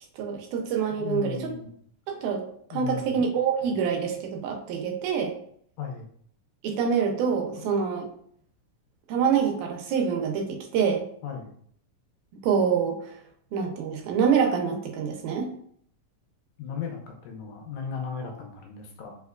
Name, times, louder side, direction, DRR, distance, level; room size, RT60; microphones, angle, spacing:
voice 1, 0.2-1.4 2.1-2.4 2.7-5.3 6.6-8.0 9.1-11.0 12.4-13.0 13.5-15.5, right 6 dB, 90° right, 2 dB, 2.1 m, -26 dB
voice 2, 0.9-1.7 2.7-3.2 5.8-6.1 7.6-7.7 11.2-11.5 16.6-19.2, left 6 dB, 85° left, 2 dB, 2.0 m, -36 dB
4.9 x 2.2 x 2.4 m, 0.62 s
omnidirectional pair, 3.4 m